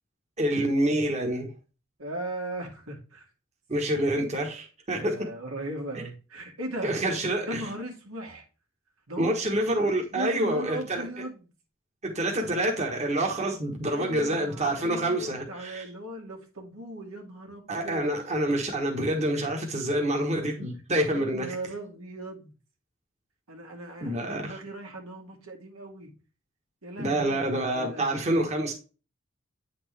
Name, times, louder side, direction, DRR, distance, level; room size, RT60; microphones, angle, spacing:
voice 1, 0.4-1.5 3.7-5.3 6.8-7.6 9.2-11.0 12.0-15.8 17.7-21.5 24.0-24.6 27.0-28.7, right 1 dB, 35° right, 1.4 m, -27 dB
voice 2, 2.0-3.3 5.0-7.0 7.4-8.5 9.1-9.5 10.1-11.5 13.9-18.2 21.0-22.5 23.5-26.1 26.8-28.2, right 1 dB, 85° right, 2.1 m, -38 dB
9.1 x 4.3 x 3.3 m
head